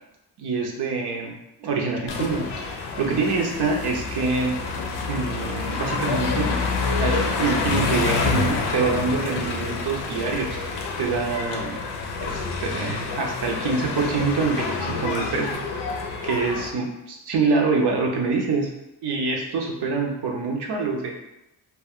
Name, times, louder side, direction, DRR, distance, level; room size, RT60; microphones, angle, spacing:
voice 1, 0.4-1.3 1.6-2.5 2.7-4.6 5.1-6.6 7.0-10.6 11.0-11.8 12.2-15.6 16.2-18.7 19.0-21.1, right 4 dB, 75° right, 1 dB, 0.7 m, -25 dB
sound 1, 2.1-16.7, left 4 dB, 85° left, 0.5 m, -27 dB
2.2 x 2.2 x 3.5 m, 0.90 s
cardioid pair, 55°, 40 cm